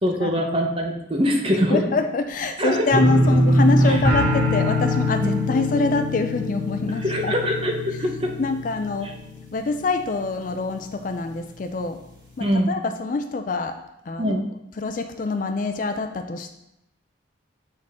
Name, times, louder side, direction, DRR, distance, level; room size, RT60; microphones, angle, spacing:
voice 1, 0.0-1.8 2.6-2.9 3.9-4.0 5.2-5.3 7.0-8.3 12.4-12.7 14.2-14.4, equal, 25° right, 1 dB, 0.9 m, -23 dB
voice 2, 1.7-7.3 8.4-9.1 9.5-12.0 12.4-14.3 14.8-16.5, left 3 dB, 40° left, 8 dB, 0.4 m, -25 dB
sound 1, 2.9-9.8 10.1-10.6 11.0-11.1, left 1 dB, 70° right, 2.2 m, -22 dB
7.5 x 4.5 x 3.6 m, 0.85 s
head